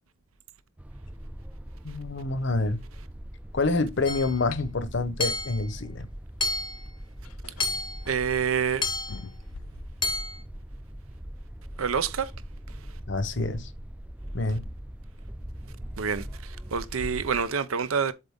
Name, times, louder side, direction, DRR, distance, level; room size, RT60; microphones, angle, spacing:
sound 1, 0.8-17.5, equal, 5° right, 0.3 m, -41 dB
voice 1, 1.8-2.8 3.5-6.1 13.1-13.7 14.3-14.6, left 3 dB, 60° left, 0.8 m, -27 dB
Hammer / Chink clink, 4.1-4.4 5.2-5.6 6.4-6.8 7.6-8.0 8.8-9.2 10.0-10.4, left 2 dB, 25° left, 0.7 m, -30 dB
sound 2, 4.5-4.7 6.5-6.6 7.2-8.3 9.1-10.4, left 5 dB, 90° left, 0.6 m, -44 dB
voice 2, 8.1-8.8 11.8-12.3 16.0-18.1, right 6 dB, 85° right, 0.7 m, -27 dB
7.6 x 3.9 x 3.5 m
head